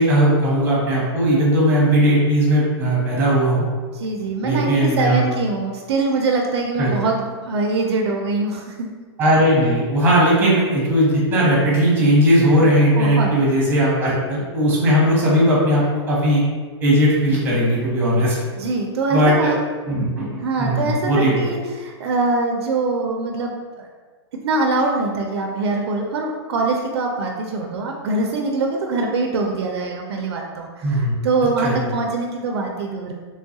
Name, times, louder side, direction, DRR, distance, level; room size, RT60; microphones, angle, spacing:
voice 1, 0.0-3.6 4.4-5.2 6.8-6.9 9.2-16.4 16.8-18.4 19.1-19.5 19.9-20.3 20.6-21.3 30.8-31.1 31.6-31.7, equal, 15° right, -5 dB, 0.9 m, -17 dB
voice 2, 3.9-8.9 12.9-13.3 18.5-19.7 20.4-23.9 24.4-33.1, right 3 dB, 65° right, 2 dB, 0.4 m, -23 dB
3.2 x 2.3 x 2.7 m, 1.5 s
hypercardioid pair, 150°, 14 cm